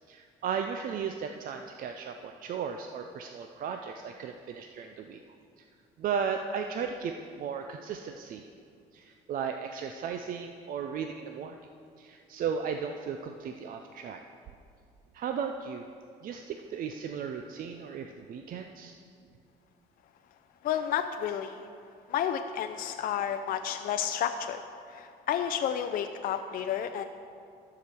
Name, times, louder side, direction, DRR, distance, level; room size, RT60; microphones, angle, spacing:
voice 1, 0.1-5.2 5.6-5.7 6.0-8.5 8.9-11.6 12.0-14.2 15.1-15.9 16.2-19.0, right 6 dB, 55° right, 5 dB, 0.5 m, -35 dB
voice 2, 20.6-21.6 22.1-24.6 24.9-27.0, left 9 dB, 60° left, 7 dB, 0.5 m, -31 dB
13.5 x 4.9 x 6.8 m, 2.4 s
cardioid pair, 110°, 17 cm